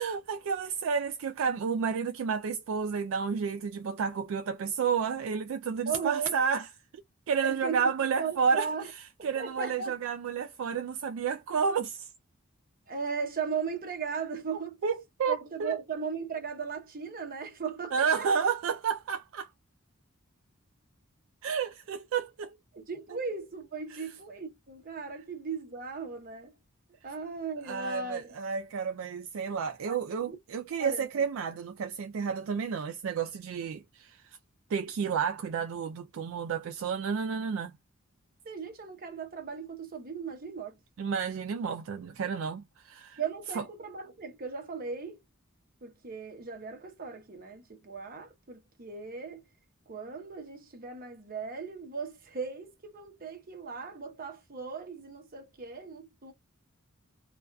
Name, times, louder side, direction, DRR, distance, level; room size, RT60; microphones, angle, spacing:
voice 1, 0.0-6.7 7.3-8.7 9.2-12.1 14.8-15.8 17.9-19.5 21.4-22.6 23.9-24.1 27.7-34.2 34.7-37.7 41.0-43.2 43.6-43.7, right 6 dB, 65° right, 0.3 m, -31 dB
voice 2, 5.9-6.3 7.4-7.8 8.2-8.9 9.2-9.9 12.9-14.8 15.3-18.3 22.7-26.6 27.0-28.4 29.9-30.4 30.8-31.2 38.4-40.8 43.2-45.2 45.8-49.4 49.9-56.3, right 5 dB, 45° right, 0.8 m, -37 dB
2.5 x 2.3 x 2.2 m
head